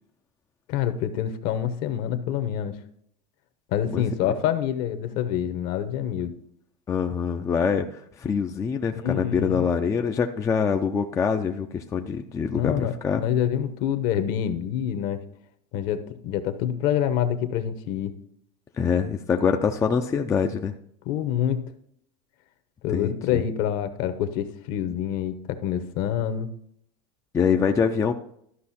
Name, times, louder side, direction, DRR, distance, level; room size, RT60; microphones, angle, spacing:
voice 1, 0.7-2.8 3.7-6.3 8.9-9.7 12.5-15.2 15.7-18.1 21.1-21.7 22.8-26.5, left 9 dB, 50° left, 10 dB, 1.0 m, -26 dB
voice 2, 6.9-13.2 18.8-20.7 22.9-23.4 27.3-28.1, left 6 dB, 15° left, 5 dB, 0.4 m, -24 dB
13.0 x 5.6 x 4.2 m, 0.69 s
supercardioid pair, 140°, 19 cm